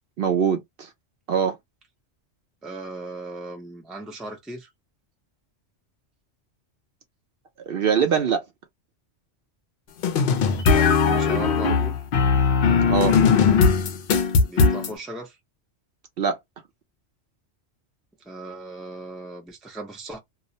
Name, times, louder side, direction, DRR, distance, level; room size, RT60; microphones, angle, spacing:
voice 1, 0.2-0.9 1.3-1.6 7.7-8.5 12.9-13.2 16.2-16.4, right 7 dB, 60° right, 0.7 m, -22 dB
voice 2, 2.6-4.7 10.7-12.0 14.4-15.4 18.3-20.2, right 2 dB, ahead, 0.4 m, -37 dB
sound 1, 10.0-14.9, left 5 dB, 60° left, 0.6 m, -19 dB
2.3 x 2.1 x 2.6 m
omnidirectional pair, 1.2 m